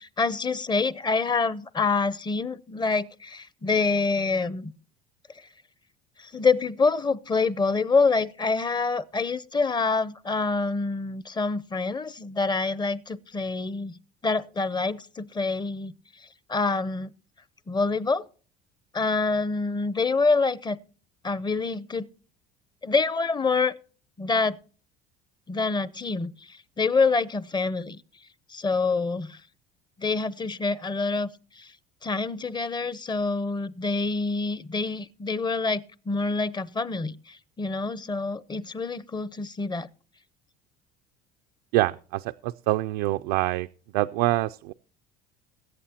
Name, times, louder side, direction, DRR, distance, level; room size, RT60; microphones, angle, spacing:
voice 1, 0.0-4.7 6.2-15.9 16.5-17.1 17.7-18.2 18.9-20.8 21.2-22.1 22.8-23.7 24.2-24.6 25.5-28.0 28.5-29.4 30.0-31.3 31.6-31.7 32.0-39.9, left 4 dB, 20° left, 0.7 m, -26 dB
voice 2, 41.7-43.7 43.9-44.7, right 17 dB, 80° right, 0.4 m, -25 dB
22.0 x 8.4 x 2.8 m
supercardioid pair, 95°, 21 cm